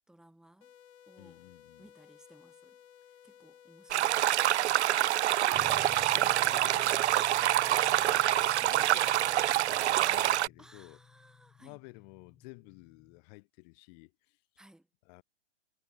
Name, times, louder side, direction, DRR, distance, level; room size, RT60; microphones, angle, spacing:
voice 1, 0.1-0.7 1.1-1.4 1.8-2.8 3.2-4.6 10.6-11.8 14.6-14.9, right 1 dB, ahead, 2.3 m, -60 dB
sound 1, 0.6-9.6, left 9 dB, 70° left, 2.8 m, -57 dB
voice 2, 1.2-1.9 5.6-7.2 7.8-11.0 11.6-14.4 15.0-15.2, left 32 dB, 35° left, 2.8 m, -53 dB
sound 2, 3.9-10.5, right 13 dB, 75° right, 0.5 m, -26 dB
sound 3, 5.5-13.2, left 8 dB, 15° left, 3.0 m, -53 dB
hypercardioid pair, 140°, 35 cm